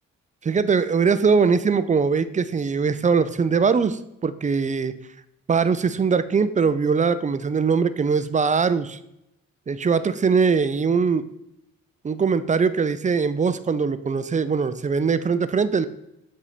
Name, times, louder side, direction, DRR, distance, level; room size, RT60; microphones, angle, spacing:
voice 1, 0.4-5.0 5.5-9.0 9.7-11.2 12.0-15.9, right 5 dB, 25° right, 14 dB, 0.4 m, -21 dB
7.5 x 2.7 x 4.9 m, 0.84 s
supercardioid pair, 50°, 33 cm